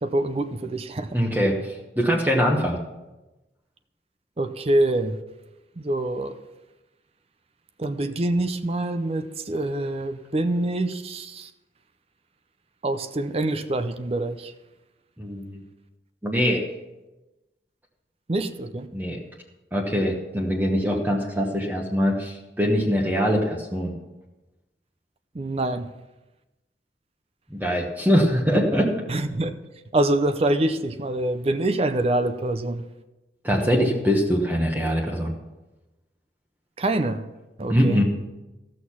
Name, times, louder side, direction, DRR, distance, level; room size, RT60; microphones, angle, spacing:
voice 1, 0.0-1.2 4.4-5.2 5.8-6.4 7.8-11.5 12.8-14.5 18.3-18.9 25.3-25.9 29.1-29.5 29.9-32.8 36.8-37.3 37.6-38.0, right 1 dB, 35° right, 10 dB, 0.5 m, -25 dB
voice 2, 1.1-2.8 15.2-15.6 16.2-16.6 18.9-19.2 19.7-23.9 27.5-28.9 33.4-35.3 37.7-38.0, equal, 10° right, -1 dB, 1.1 m, -23 dB
14.5 x 6.4 x 5.8 m, 1.0 s
head